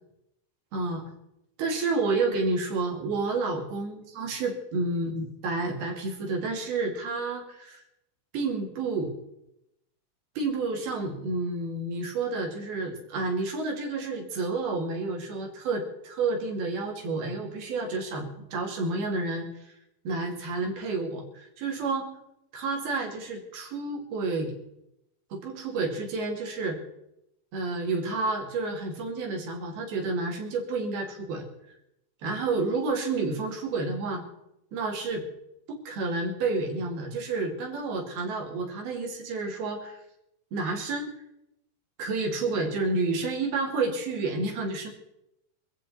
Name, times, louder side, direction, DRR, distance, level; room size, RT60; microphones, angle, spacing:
voice 1, 1.6-7.8 8.3-9.1 10.4-19.8 20.0-22.1 22.5-24.5 25.3-26.8 27.5-31.5 32.2-34.2 34.7-35.2 35.9-40.0 40.5-41.1 42.0-44.9, right 3 dB, 90° right, 1 dB, 4.3 m, -30 dB
26.0 x 8.9 x 4.2 m, 0.85 s
omnidirectional pair, 4.2 m